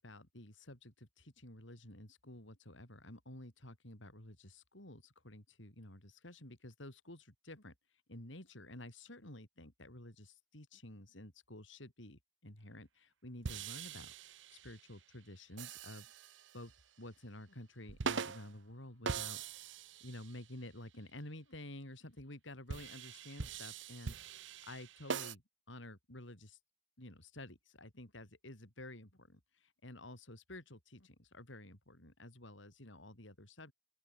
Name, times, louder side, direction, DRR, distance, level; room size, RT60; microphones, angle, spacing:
voice 1, 0.0-7.7 8.1-16.1 16.5-16.7 17.0-19.7 20.0-24.2 24.6-25.4 25.7-26.6 27.0-33.7, left 1 dB, 70° left, 5.3 m, -51 dB
sound 1, 13.4-14.9 15.6-16.7 17.9-18.5 19.1-20.4 22.7-25.3, right 5 dB, 70° right, 0.8 m, -42 dB
open air
head